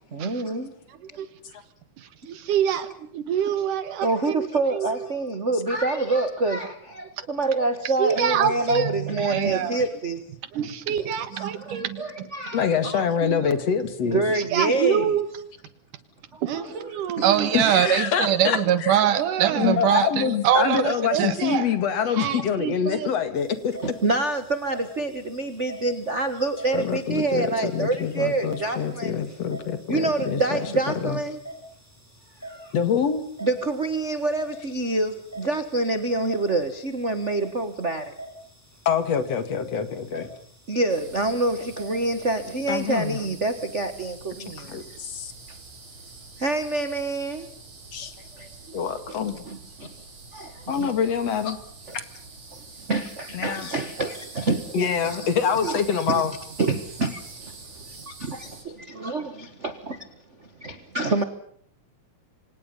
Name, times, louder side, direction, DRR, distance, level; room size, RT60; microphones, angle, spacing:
voice 1, 0.1-0.7 4.0-10.2 11.0-12.7 14.0-15.2 16.3-16.7 17.0-17.3 17.7-18.0 23.8-29.2 29.9-31.4 32.5-32.7 33.4-38.1 40.7-44.8 45.5-45.6 46.4-47.5 48.3-48.8 49.1-49.6 50.5-50.9 51.9-52.0 52.5-55.3 55.6-56.2 56.6-57.2 58.1-60.1 60.6-61.2, right 2 dB, 40° right, 10 dB, 1.0 m, -27 dB
voice 2, 2.0-4.5 4.7-4.9 8.0-9.8 10.5-12.0 12.9-13.5 14.3-15.3 16.4-21.7 22.2-23.2, right 9 dB, 80° right, 12 dB, 3.1 m, -24 dB
voice 3, 12.5-14.2 17.5-19.0 19.6-23.7 26.7-30.7 31.0-31.2 32.7-33.2 38.9-40.3 42.7-43.2 44.6-45.3 47.9-48.1 48.7-49.4 50.7-51.6 53.3-53.7 54.7-56.3, left 7 dB, 55° left, 11 dB, 3.0 m, -25 dB
sound 1, 23.3-41.9, right 1 dB, 5° right, 6.1 m, -46 dB
sound 2, 40.9-58.6, right 3 dB, 60° right, 6.6 m, -45 dB
28.0 x 25.5 x 5.5 m, 0.63 s
omnidirectional pair, 3.6 m